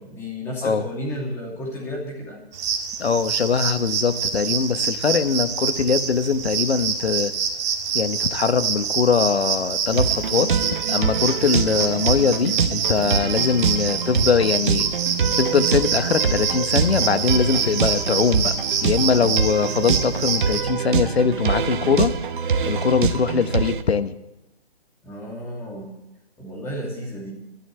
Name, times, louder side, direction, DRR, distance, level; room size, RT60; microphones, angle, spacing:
voice 1, 0.0-2.4 25.0-25.9 26.4-27.3, equal, 10° left, -2 dB, 2.8 m, -32 dB
sound 1, 2.5-20.6, right 6 dB, 25° right, 2.1 m, -26 dB
voice 2, 3.0-7.3 7.9-10.5 10.9-14.9 15.4-18.5 18.8-22.1 22.7-24.1, left 6 dB, 80° left, 11 dB, 1.3 m, -22 dB
sound 2, 9.9-23.8, right 6 dB, 55° right, 1.2 m, -25 dB
23.0 x 12.5 x 3.3 m, 0.94 s
hypercardioid pair, 165°, 31 cm